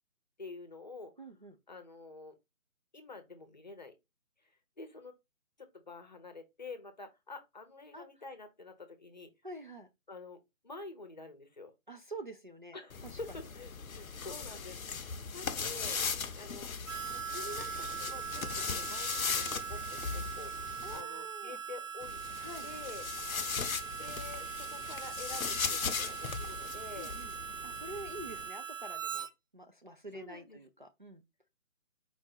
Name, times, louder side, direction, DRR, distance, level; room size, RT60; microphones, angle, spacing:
voice 1, 0.4-1.3 1.7-2.4 2.9-3.9 4.4-4.5 4.8-5.2 5.6-9.3 10.1-11.7 12.7-16.0 16.3-16.7 17.1-22.2 22.6-23.0 24.0-27.2 30.1-30.6, left 3 dB, 35° left, 0.7 m, -48 dB
voice 2, 1.2-1.6 7.9-8.0 9.4-9.9 11.9-12.8 20.8-21.6 22.4-22.7 27.0-27.3 27.6-29.3 29.5-31.2, right 1 dB, 40° right, 0.4 m, -47 dB
sound 1, 12.9-21.0 22.0-28.5, left 5 dB, 85° left, 0.7 m, -38 dB
Harmonica, 16.9-29.3, right 8 dB, 65° right, 0.8 m, -41 dB
4.6 x 2.6 x 4.3 m
figure-of-eight pair, 155°, 41 cm